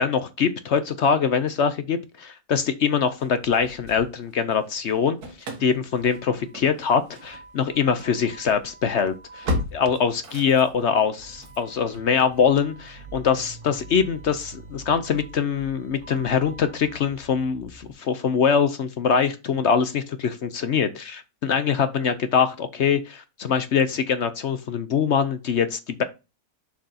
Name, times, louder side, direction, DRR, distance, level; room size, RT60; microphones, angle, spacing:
voice 1, 0.0-26.0, left 6 dB, 60° left, 11 dB, 0.8 m, -23 dB
Engine starting / Slam, 3.2-4.6 4.9-17.9, left 1 dB, 80° right, 2.1 m, -38 dB
7.1 x 6.0 x 2.8 m, 0.27 s
omnidirectional pair, 1.6 m